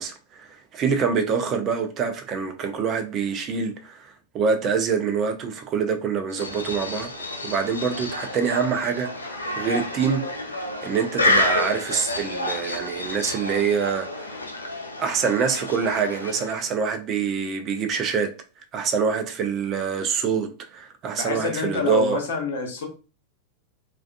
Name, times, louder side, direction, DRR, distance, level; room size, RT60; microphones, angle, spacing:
voice 1, 0.0-7.1 7.4-14.4 15.0-18.3 18.7-22.2, right 6 dB, 30° right, 0.4 m, -25 dB
sound 1, 6.3-16.7, left 1 dB, 80° left, 0.3 m, -29 dB
voice 2, 21.2-22.9, left 4 dB, 60° left, 0.7 m, -27 dB
2.3 x 2.2 x 2.4 m
figure-of-eight pair, 90°, 0 cm